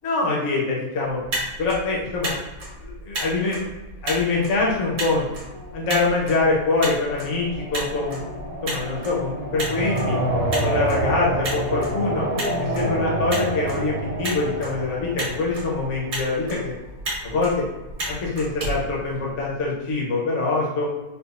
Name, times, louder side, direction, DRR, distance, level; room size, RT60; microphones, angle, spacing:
voice 1, 0.0-1.2 1.6-2.4 2.8-3.7 4.0-5.2 5.7-8.2 8.6-10.2 10.6-12.3 12.6-16.7 17.2-17.6 18.1-20.9, left 3 dB, 60° left, -4 dB, 1.1 m, -24 dB
Motor vehicle (road), 1.1-19.7, right 1 dB, 80° right, 1.6 m, -34 dB
sound 1, 5.5-16.3, right 1 dB, 60° right, 0.3 m, -28 dB
4.0 x 2.4 x 2.4 m, 1.1 s
omnidirectional pair, 1.5 m